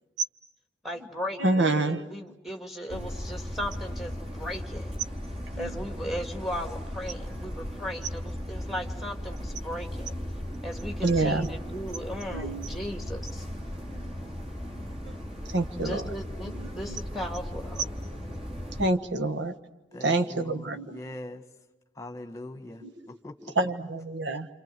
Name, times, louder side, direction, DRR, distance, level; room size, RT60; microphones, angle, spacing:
voice 1, 0.8-4.9 5.6-10.2 10.6-13.4 15.8-17.9, equal, ahead, 4 dB, 2.2 m, -37 dB
voice 2, 1.4-2.1 2.9-3.1 5.6-5.8 11.0-11.5 12.3-12.7 13.9-14.0 15.5-16.1 16.6-17.0 18.8-19.5 20.0-21.0 22.8-22.9 23.5-24.5, right 2 dB, 70° right, 8 dB, 1.4 m, -27 dB
sound 1, 2.9-18.9, equal, 30° right, 4.0 m, -37 dB
voice 3, 19.9-21.4 22.0-22.8 23.1-23.5, left 1 dB, 15° left, 7 dB, 1.7 m, -42 dB
28.5 x 27.0 x 7.8 m, 1.0 s
head